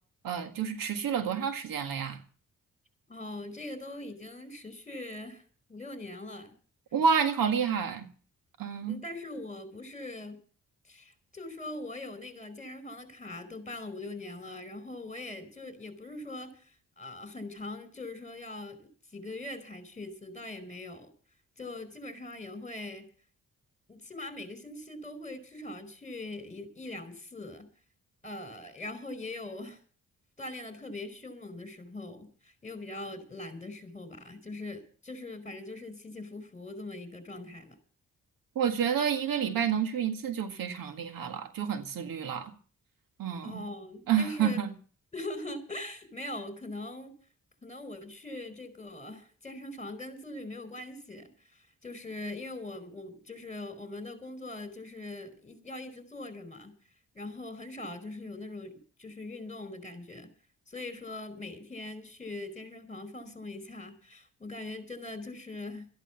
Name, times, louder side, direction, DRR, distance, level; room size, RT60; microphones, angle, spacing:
voice 1, 0.2-2.2 6.9-8.1 8.6-9.0 38.6-42.5 43.2-43.6 44.1-44.7, right 7 dB, 85° right, 7 dB, 1.9 m, -29 dB
voice 2, 3.1-6.5 8.9-10.4 10.8-21.1 21.6-23.1 23.9-27.7 28.2-29.8 30.4-37.8 43.4-44.6 45.1-47.1 47.6-56.7 57.1-60.3 60.7-65.9, left 2 dB, 20° left, 13 dB, 4.7 m, -42 dB
14.0 x 10.5 x 7.1 m, 0.42 s
cardioid pair, 65°, 33 cm